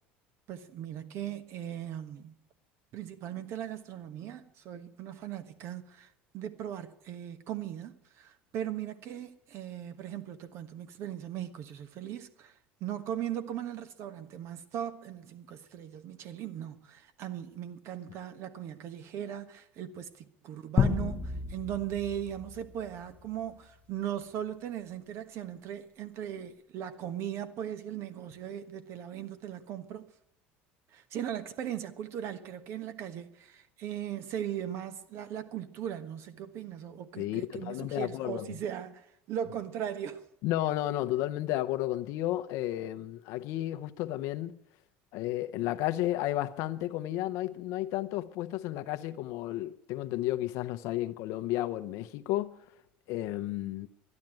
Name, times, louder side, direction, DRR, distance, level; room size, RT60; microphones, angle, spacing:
voice 1, 0.5-2.3 2.9-30.1 30.9-40.2, right 10 dB, 60° right, 1.3 m, -38 dB
sound 1, 20.8-23.6, left 6 dB, 30° left, 0.8 m, -32 dB
voice 2, 37.2-38.5 40.4-44.6 45.1-52.6 53.1-53.9, left 15 dB, 70° left, 0.8 m, -32 dB
12.0 x 11.0 x 8.9 m
supercardioid pair, 105°, 5 cm